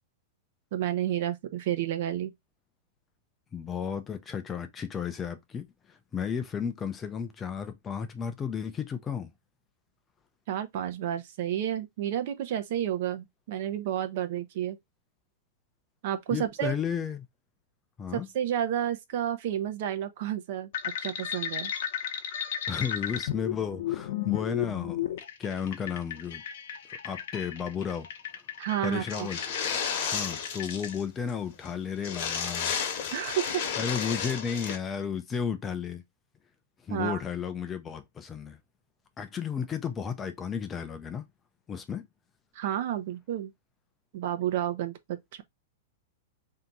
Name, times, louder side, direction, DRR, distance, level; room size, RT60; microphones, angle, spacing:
voice 1, 0.7-2.3 10.5-14.8 16.0-16.8 18.1-21.7 28.6-29.3 33.1-33.6 36.9-37.2 42.5-43.5 44.1-45.4, right 11 dB, 50° right, 0.7 m, -31 dB
voice 2, 3.5-9.3 16.3-17.3 18.0-18.3 22.7-25.0 25.4-26.4 27.0-28.1 28.8-29.4 30.0-33.1 33.8-36.0 36.8-38.6 39.2-41.2 41.7-42.1, left 7 dB, 15° left, 0.5 m, -33 dB
sound 1, 20.7-30.9, left 10 dB, 60° left, 0.8 m, -35 dB
sound 2, 29.1-31.0 31.3-31.4 31.6-31.7 32.0-34.8, left 7 dB, 45° left, 1.1 m, -32 dB
3.4 x 2.8 x 3.9 m
supercardioid pair, 160°, 0 cm